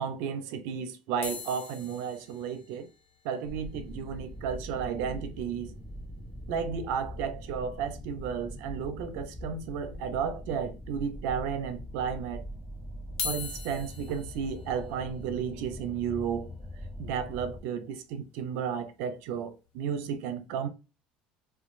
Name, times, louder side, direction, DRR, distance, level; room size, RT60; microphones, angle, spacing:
voice 1, 0.0-2.9 3.2-5.8 6.5-12.4 13.2-16.5 17.0-20.7, right 7 dB, 70° right, 0.6 m, -33 dB
sound 1, 1.2-5.6 5.9-6.0 6.1-6.3 6.7-6.8 8.2-8.3 9.0-9.5 10.0-10.1 10.9-11.0 13.0-19.1 19.7-19.9, left 6 dB, 55° left, 1.2 m, -43 dB
sound 2, 3.4-17.6, equal, 5° left, 0.7 m, -42 dB
2.9 x 2.3 x 2.5 m
supercardioid pair, 90°, 4 cm